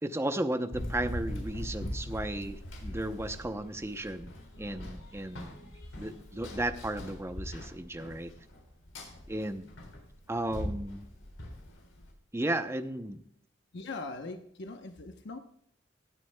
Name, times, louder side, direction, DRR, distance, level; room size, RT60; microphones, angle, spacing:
voice 1, 0.0-4.3 4.6-8.3 9.3-9.7 10.3-11.1 12.3-13.2, right 1 dB, 15° right, 9 dB, 0.7 m, -34 dB
Run, 0.7-12.1, equal, 85° left, 3.7 m, -41 dB
voice 2, 13.7-15.4, left 3 dB, 60° left, 6 dB, 0.9 m, -41 dB
17.5 x 9.7 x 2.2 m, 0.67 s
head